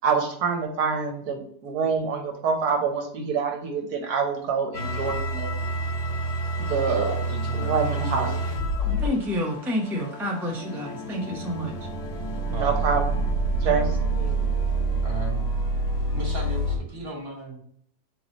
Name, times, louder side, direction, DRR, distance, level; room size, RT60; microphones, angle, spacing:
voice 1, 0.0-5.5 6.6-7.1 7.5-8.3 12.5-13.2 13.5-14.4, right 5 dB, 70° right, 3 dB, 1.2 m, -26 dB
sound 1, 4.7-16.8, right 2 dB, 75° left, 1.7 m, -28 dB
voice 2, 6.8-8.4 12.3-13.0 15.0-15.5 16.1-17.6, right 1 dB, 40° right, 0 dB, 1.4 m, -36 dB
voice 3, 8.9-11.8 13.6-13.9, left 1 dB, 5° right, -2 dB, 0.3 m, -29 dB
3.7 x 3.1 x 3.9 m, 0.66 s
omnidirectional pair, 1.8 m